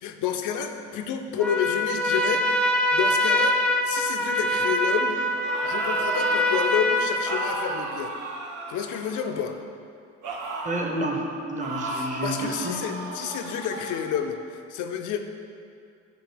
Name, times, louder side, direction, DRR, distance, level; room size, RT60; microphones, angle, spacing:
voice 1, 0.0-3.6 3.8-5.2 5.6-8.1 8.7-9.6 11.9-15.2, left 8 dB, 90° left, 6 dB, 0.5 m, -30 dB
Trumpet, 1.4-7.9, left 1 dB, 5° left, 0.4 m, -24 dB
sound 1, 5.3-6.7 7.2-9.5 10.2-10.9 11.6-14.1, right 2 dB, 85° right, 0.8 m, -35 dB
voice 2, 10.6-12.8, right 1 dB, 25° right, 1 dB, 0.8 m, -30 dB
7.4 x 2.8 x 5.0 m, 2.4 s
cardioid pair, 90°, 30 cm